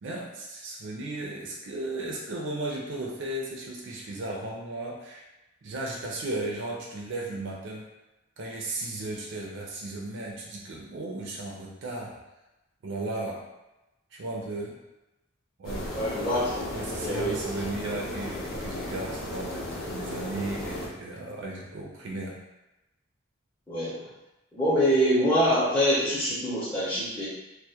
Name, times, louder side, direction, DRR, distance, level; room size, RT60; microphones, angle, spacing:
voice 1, 0.0-5.2 5.6-7.9 8.4-12.2 12.8-13.5 14.1-14.8 15.6-15.9 16.7-22.4, right 2 dB, 60° right, -2 dB, 0.4 m, -35 dB
sound 1, 15.6-20.9, left 1 dB, 85° left, 0.6 m, -35 dB
voice 2, 15.9-16.6 16.9-17.4 23.7-24.0 24.5-27.3, equal, 5° left, -12 dB, 0.4 m, -25 dB
2.2 x 2.1 x 2.7 m, 0.98 s
head